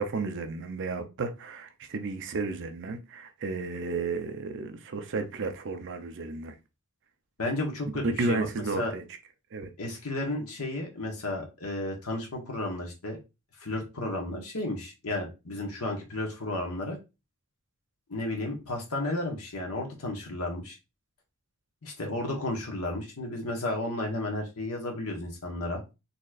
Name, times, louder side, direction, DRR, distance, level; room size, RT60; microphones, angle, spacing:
voice 1, 0.0-6.6 7.9-9.0 9.5-9.7, right 3 dB, 55° right, 0.6 m, -32 dB
voice 2, 7.4-8.5 8.8-8.9 9.8-13.2 13.6-17.0 18.1-20.8 21.8-25.8, left 2 dB, 85° left, 1.3 m, -33 dB
4.1 x 3.1 x 2.4 m
head